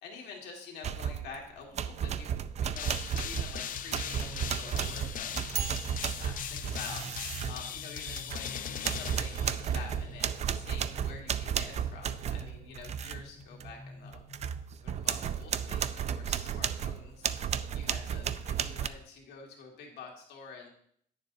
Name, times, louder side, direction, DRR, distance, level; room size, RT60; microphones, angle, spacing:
voice 1, 0.0-2.3 2.6-14.2 14.8-17.3 17.7-20.7, left 5 dB, 80° left, 1 dB, 2.0 m, -48 dB
sound 1, 0.8-1.4 1.8-8.5 8.8-13.2 13.6-13.7 14.1-18.9, right 8 dB, 40° right, 0.5 m, -33 dB
sound 2, 2.8-10.0, left 9 dB, 55° left, 0.6 m, -39 dB
sound 3, 3.6-14.6, left 1 dB, 15° left, 0.8 m, -50 dB
9.2 x 7.0 x 4.0 m, 0.64 s
cardioid pair, 110°, 17 cm